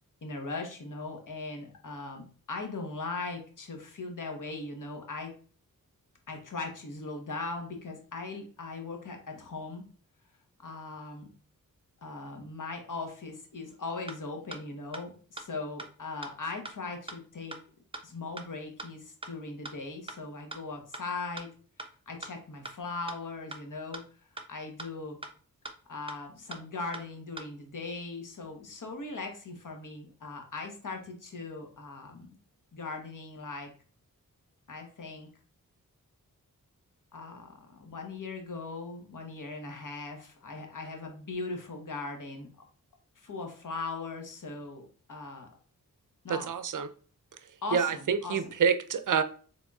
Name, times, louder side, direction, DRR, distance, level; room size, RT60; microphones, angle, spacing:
voice 1, 0.2-5.3 6.3-9.8 10.6-11.3 12.0-17.5 18.0-21.5 22.1-24.0 24.5-25.2 25.9-32.3 32.7-33.7 34.7-35.3 37.1-42.5 43.2-45.5 46.2-46.5 47.6-48.4, left 3 dB, 60° left, 1.1 m, -39 dB
sound 1, 13.7-13.8 14.1-14.2 14.5-14.6 14.9-15.0 15.4-15.5 15.8-15.9 16.2-16.3 16.6-16.7 17.1-17.2 17.5-17.6 17.9-18.0 18.4-18.5 18.8-18.9 19.2-19.3 19.6-19.7 20.1-20.2 20.5-20.6 20.9-21.0 21.4-21.5 21.8-21.9 22.2-22.3 22.6-22.7 23.1-23.2 23.5-23.6 23.9-24.0 24.4-24.5 24.8-24.9 25.2-25.3 25.6-25.7 26.1-26.2 26.5-26.6 26.9-27.0 27.4-27.5, right 2 dB, 15° right, 0.6 m, -40 dB
voice 2, 46.3-46.9 47.7-49.2, right 6 dB, 60° right, 0.5 m, -27 dB
3.9 x 3.5 x 2.3 m
cardioid pair, 45°, 35 cm